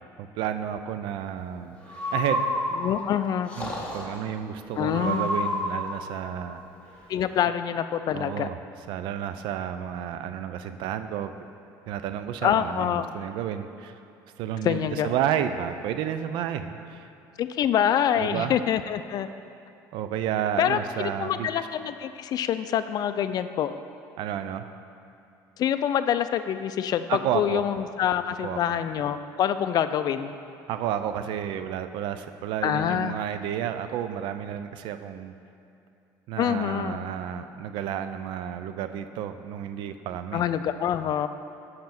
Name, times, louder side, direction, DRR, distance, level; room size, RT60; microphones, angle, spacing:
voice 1, 0.2-2.4 3.6-6.6 8.1-8.6 8.9-11.3 11.9-13.9 14.4-17.1 18.2-18.6 19.9-21.5 24.2-24.7 27.1-27.6 28.4-28.6 30.7-35.3 36.3-40.4, right 9 dB, 70° right, 10 dB, 0.4 m, -31 dB
Breathing, 1.9-3.0 3.5-4.2 4.9-5.9, equal, 15° left, 1.6 m, -29 dB
voice 2, 2.8-3.5 4.8-5.3 7.1-8.5 12.4-13.1 14.6-15.1 17.4-19.3 20.6-23.8 25.6-30.3 32.6-33.2 36.4-37.0 40.3-41.3, left 9 dB, 50° left, 11 dB, 0.3 m, -26 dB
5.7 x 5.4 x 5.9 m, 2.6 s
supercardioid pair, 90°, 9 cm